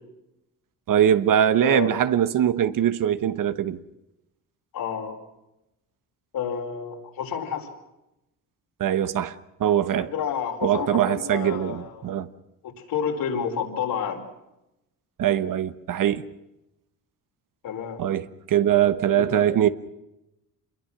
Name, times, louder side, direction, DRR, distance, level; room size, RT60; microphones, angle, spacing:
voice 1, 0.9-3.8 8.8-10.1 10.6-12.3 15.2-16.2 18.0-19.7, right 10 dB, 60° right, 1.3 m, -22 dB
voice 2, 1.6-2.0 4.7-5.2 6.3-7.7 10.1-12.1 12.9-14.2 17.6-18.0 19.1-19.5, left 7 dB, 70° left, 4.8 m, -29 dB
26.5 x 22.0 x 6.2 m
cardioid pair, 100°, 36 cm